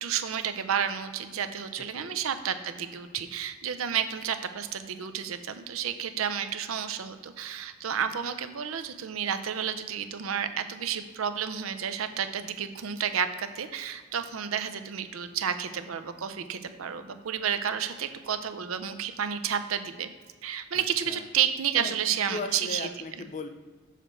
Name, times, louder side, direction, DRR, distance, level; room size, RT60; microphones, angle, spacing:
voice 1, 0.0-20.1 20.4-22.9, right 8 dB, 80° right, 10 dB, 0.5 m, -31 dB
voice 2, 20.7-21.2 21.8-23.5, left 3 dB, 35° left, 8 dB, 0.5 m, -38 dB
6.4 x 5.0 x 4.4 m, 1.5 s
head